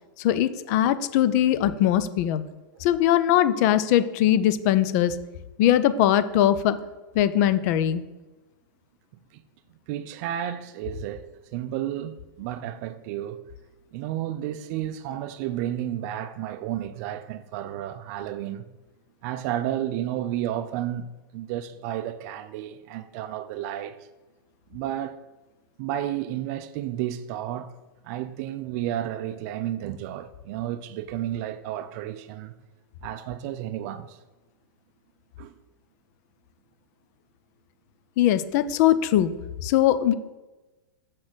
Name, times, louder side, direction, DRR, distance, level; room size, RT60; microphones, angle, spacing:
voice 1, 0.2-2.4 2.8-5.2 5.6-6.8 7.1-8.0 38.2-39.3 39.6-40.1, left 11 dB, 50° left, 0.5 m, -21 dB
voice 2, 9.9-11.2 11.5-13.4 13.9-18.7 19.2-24.0 24.7-25.2 25.8-27.7 28.0-32.5 33.0-34.2 35.4-35.5, right 12 dB, 45° right, 0.4 m, -32 dB
6.3 x 4.1 x 6.1 m
hypercardioid pair, 135°, 12 cm